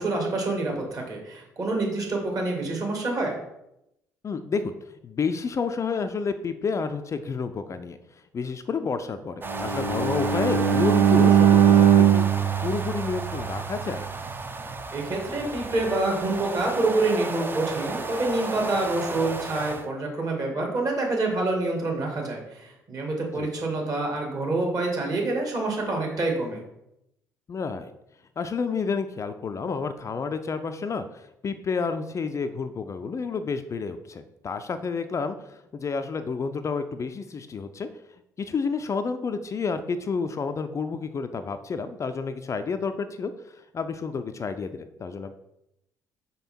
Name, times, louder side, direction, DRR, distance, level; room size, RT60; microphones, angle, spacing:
voice 1, 0.0-3.4 14.9-26.6, right 2 dB, 40° right, 0 dB, 2.4 m, -27 dB
voice 2, 4.2-4.7 5.0-14.1 23.2-23.5 27.5-27.9 28.4-37.9 38.4-45.3, left 5 dB, 35° left, 9 dB, 0.5 m, -30 dB
sound 1, 9.4-19.9, right 3 dB, 25° right, 0.7 m, -33 dB
Bowed string instrument, 9.5-13.6, right 9 dB, 70° right, 0.8 m, -20 dB
5.6 x 5.4 x 4.3 m, 0.83 s
figure-of-eight pair, 50°, 9 cm